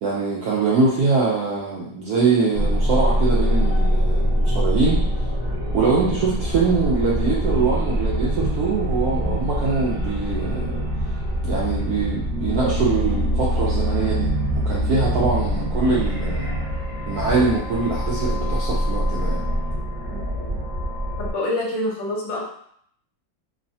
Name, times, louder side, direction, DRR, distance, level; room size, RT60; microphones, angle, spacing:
voice 1, 0.0-5.0 5.7-10.8 11.4-16.5 17.1-19.5, right 4 dB, 75° right, -5 dB, 0.9 m, -23 dB
sound 1, 2.5-21.3, equal, 35° right, 0.9 m, -24 dB
voice 2, 21.2-22.4, left 1 dB, 75° left, -2 dB, 1.3 m, -26 dB
3.1 x 2.1 x 2.6 m, 0.67 s
omnidirectional pair, 2.1 m